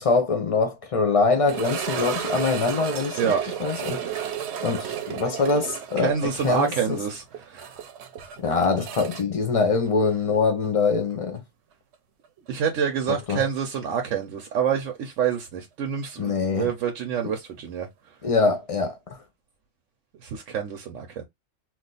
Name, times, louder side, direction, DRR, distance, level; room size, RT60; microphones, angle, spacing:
voice 1, 0.0-3.3 3.6-4.0 4.6-7.0 8.4-11.4 13.1-13.4 16.2-16.7 18.2-19.2, left 4 dB, 45° left, 0.4 m, -24 dB
sound 1, 1.5-10.4 10.6-10.7 11.4-11.5 14.0-14.1, right 8 dB, 65° right, 0.8 m, -33 dB
voice 2, 6.0-7.7 12.5-17.9 20.2-21.2, right 7 dB, 90° right, 1.0 m, -27 dB
2.4 x 2.4 x 3.8 m
omnidirectional pair, 1.3 m